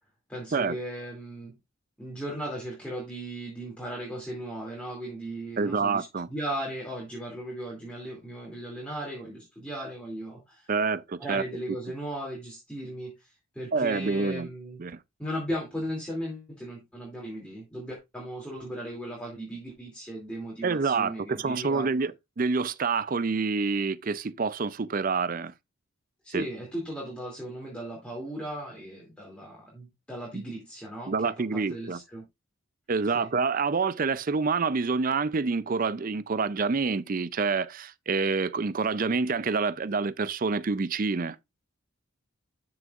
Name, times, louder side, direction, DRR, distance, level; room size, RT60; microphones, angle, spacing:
voice 1, 0.3-1.5 2.0-10.7 11.2-14.8 15.2-21.9 26.2-32.2 33.1-33.3, right 1 dB, 5° left, 2.6 m, -37 dB
voice 2, 5.6-6.3 10.7-11.4 13.7-14.5 14.8-15.0 20.6-25.5 26.3-26.5 30.3-30.4 31.1-32.0 32.9-41.4, right 4 dB, 40° right, 0.4 m, -27 dB
12.0 x 6.3 x 2.5 m
head